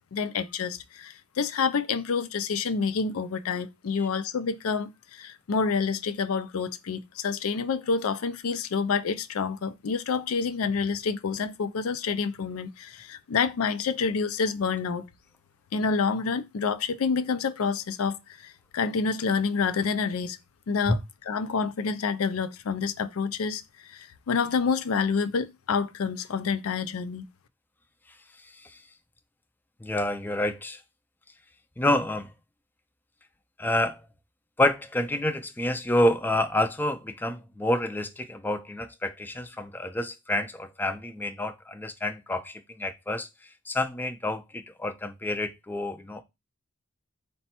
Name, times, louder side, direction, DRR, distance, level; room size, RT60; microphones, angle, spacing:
voice 1, 0.1-15.0 15.7-20.4 20.7-27.3, left 5 dB, 85° left, 0.4 m, -28 dB
voice 2, 28.4-28.8 29.8-30.8 31.8-32.3 33.6-34.0 34.6-46.2, left 1 dB, 10° left, 0.3 m, -28 dB
4.1 x 2.2 x 4.2 m
head